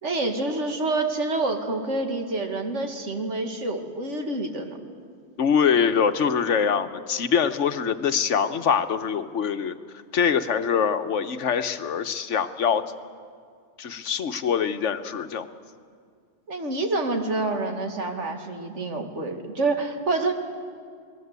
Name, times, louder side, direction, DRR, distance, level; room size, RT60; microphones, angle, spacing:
voice 1, 0.0-4.8 16.5-20.3, right 2 dB, 75° right, 4 dB, 2.5 m, -27 dB
voice 2, 5.4-9.7 10.1-12.8 13.8-15.5, left 7 dB, 80° left, 10 dB, 1.4 m, -24 dB
28.5 x 19.5 x 8.2 m, 2.1 s
omnidirectional pair, 1.2 m